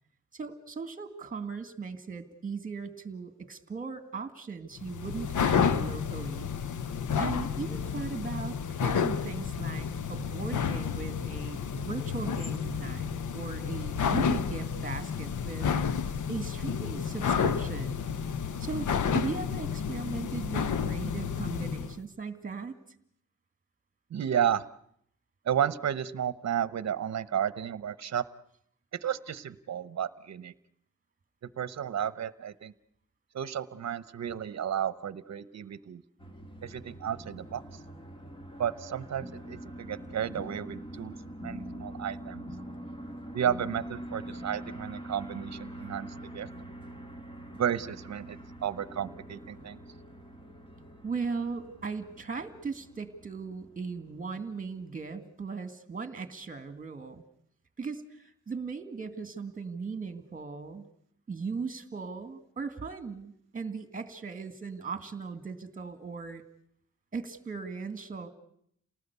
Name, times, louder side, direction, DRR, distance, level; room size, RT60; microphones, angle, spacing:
voice 1, 0.3-6.5 7.2-15.7 16.3-18.0 18.6-22.8 51.0-57.2 57.8-60.9 61.3-66.4 67.1-68.3, right 5 dB, 25° right, 9 dB, 2.1 m, -38 dB
sound 1, 4.8-22.0, left 7 dB, 80° left, 1.0 m, -31 dB
voice 2, 24.1-24.6 25.4-28.2 29.0-30.5 31.6-32.7 33.3-36.0 36.6-37.6 38.6-41.2 41.4-42.5 43.3-46.5 47.6-49.8, right 9 dB, 60° right, 16 dB, 0.9 m, -32 dB
sound 2, 36.2-54.8, right 1 dB, 15° left, 1.8 m, -44 dB
28.5 x 19.0 x 8.2 m, 0.71 s
wide cardioid pair, 135°, 30 cm